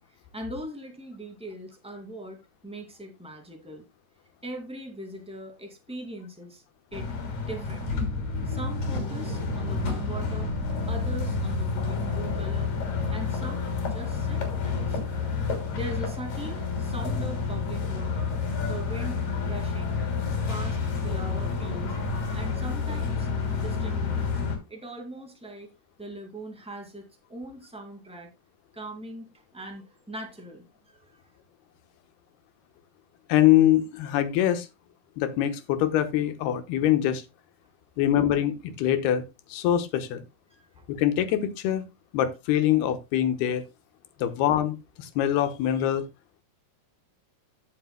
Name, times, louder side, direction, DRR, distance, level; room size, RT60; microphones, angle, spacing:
voice 1, 0.0-3.8 4.4-6.6 6.9-7.1 7.5-8.1 8.4-10.5 10.9-12.7 13.1-15.2 15.7-18.4 18.7-20.0 20.5-21.9 22.3-23.3 23.6-24.3 24.7-25.7 26.0-28.3 28.7-31.2 40.5-40.8, right 1 dB, 5° right, 2 dB, 0.8 m, -40 dB
sound 1, 6.9-24.6, left 4 dB, 55° left, 4.3 m, -29 dB
voice 2, 33.3-34.7 35.2-37.2 38.0-40.2 40.9-41.8 42.1-43.6 44.2-46.1, left 11 dB, 75° left, 10 dB, 3.0 m, -24 dB
15.0 x 7.5 x 2.2 m, 0.22 s
omnidirectional pair, 4.7 m